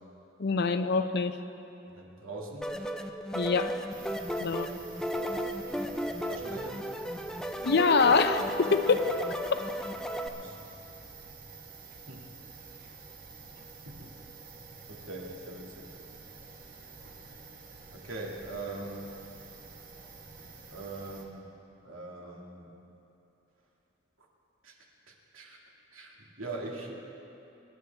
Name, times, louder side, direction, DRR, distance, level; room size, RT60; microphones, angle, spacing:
voice 1, 0.4-1.4 3.3-3.7 4.4-4.7 7.6-9.3, left 4 dB, 50° left, 9 dB, 0.6 m, -25 dB
voice 2, 1.9-2.8 6.3-6.8 10.4-10.6 12.1-12.3 13.9-14.1 14.9-15.9 17.9-19.1 20.7-21.5 21.8-22.7 24.6-24.8 25.3-25.6 25.9-26.9, right 2 dB, 80° right, -1 dB, 2.1 m, -41 dB
sound 1, 2.6-10.3, equal, 5° left, 0.5 m, -34 dB
sound 2, 3.9-21.2, right 4 dB, 40° right, 1.3 m, -49 dB
25.0 x 11.0 x 3.4 m, 2.9 s
head